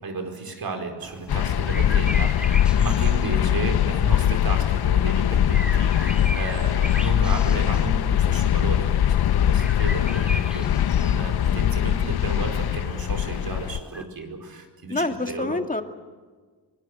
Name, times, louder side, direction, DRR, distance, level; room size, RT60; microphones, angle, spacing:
voice 1, 0.0-10.7 11.0-15.6, right 3 dB, 60° right, 5 dB, 4.8 m, -33 dB
sound 1, 1.0-14.0, equal, ahead, 2.4 m, -39 dB
sound 2, 1.3-13.8, left 10 dB, 70° left, 0.7 m, -21 dB
voice 2, 14.9-15.8, left 2 dB, 20° left, 6 dB, 2.2 m, -26 dB
24.5 x 20.5 x 8.2 m, 1.4 s
cardioid pair, 90°, 40 cm